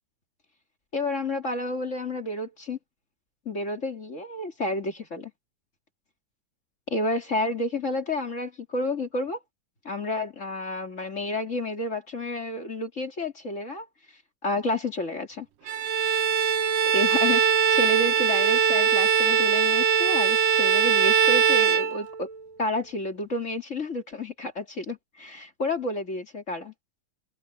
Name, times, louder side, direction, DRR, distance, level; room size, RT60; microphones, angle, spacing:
voice 1, 0.9-2.8 3.5-5.3 6.9-9.4 9.8-13.9 14.4-15.5 16.9-17.4 17.7-22.3 22.6-26.7, left 2 dB, 25° left, 2.1 m, -30 dB
Bowed string instrument, 15.7-22.4, right 7 dB, 85° right, 2.9 m, -21 dB
omnidirectional pair, 3.7 m